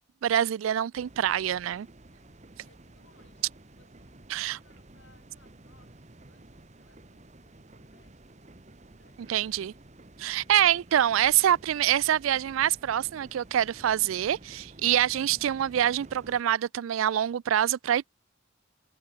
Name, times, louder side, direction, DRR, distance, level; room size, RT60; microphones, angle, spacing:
voice 1, 0.2-1.9 4.3-4.6 9.3-9.7 10.2-18.1, right 11 dB, 85° right, 0.3 m, -25 dB
sound 1, 0.9-16.4, right 2 dB, 35° right, 1.2 m, -52 dB
voice 2, 2.1-3.5 3.8-9.7 10.9-11.0, left 3 dB, 70° left, 7.9 m, -66 dB
head